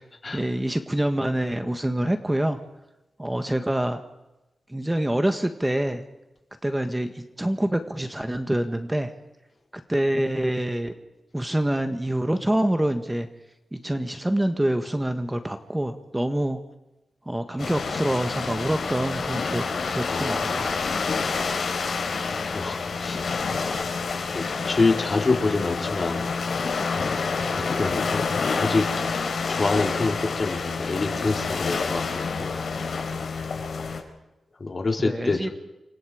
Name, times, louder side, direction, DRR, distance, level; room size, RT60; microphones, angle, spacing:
voice 1, 0.3-2.6 3.2-4.0 4.7-6.0 6.6-9.1 9.7-10.9 11.3-13.3 13.7-16.6 17.2-20.7 35.0-35.5, right 1 dB, 10° right, 8 dB, 1.5 m, -26 dB
sound 1, 17.6-34.0, left 4 dB, 70° left, 4.6 m, -28 dB
voice 2, 20.1-20.8 22.5-23.2 24.3-26.2 27.5-28.3 28.5-28.9 29.5-32.6 34.6-35.5, left 3 dB, 40° left, 3 dB, 4.0 m, -26 dB
29.0 x 24.5 x 5.1 m, 0.99 s
wide cardioid pair, 100°, 0 cm